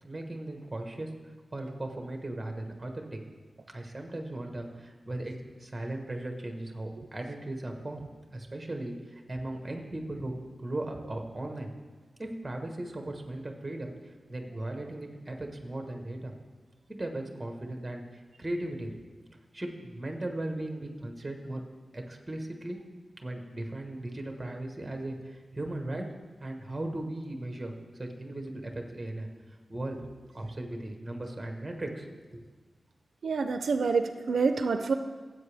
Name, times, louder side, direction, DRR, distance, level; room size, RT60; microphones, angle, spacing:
voice 1, 0.0-1.1 1.5-3.2 3.7-5.3 5.6-8.0 8.3-11.7 12.2-13.9 14.3-16.3 16.9-18.9 19.5-21.6 21.9-22.8 23.2-26.0 26.4-29.3 29.7-30.0 30.3-32.4, right 1 dB, 20° right, 3 dB, 1.2 m, -37 dB
voice 2, 33.2-34.9, right 4 dB, 80° right, 8 dB, 0.4 m, -27 dB
15.0 x 7.9 x 3.4 m, 1.4 s
wide cardioid pair, 130°, 0 cm